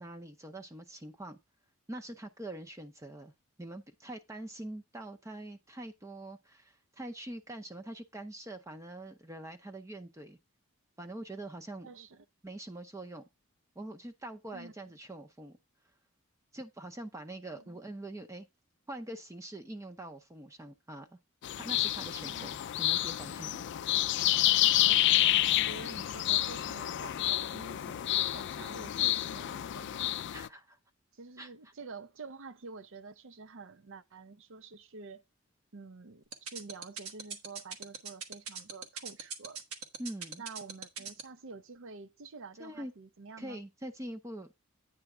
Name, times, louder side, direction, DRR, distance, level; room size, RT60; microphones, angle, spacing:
voice 1, 0.0-1.4 1.9-3.3 3.6-10.4 11.0-11.9 12.4-13.3 13.8-15.6 16.5-18.5 18.9-21.2 21.6-23.7 30.3-30.8 31.4-31.5 40.0-40.4 42.6-42.9 43.4-44.5, right 1 dB, 15° right, 0.6 m, -44 dB
voice 2, 11.8-12.2 14.5-14.7 17.5-17.8 22.2-22.5 24.8-30.2 31.1-35.2 35.7-39.6 40.4-43.6, right 4 dB, 60° right, 0.6 m, -48 dB
sound 1, 21.4-30.5, left 14 dB, 55° left, 0.3 m, -29 dB
sound 2, 36.3-41.2, right 5 dB, 80° right, 1.2 m, -39 dB
8.9 x 3.4 x 5.9 m
head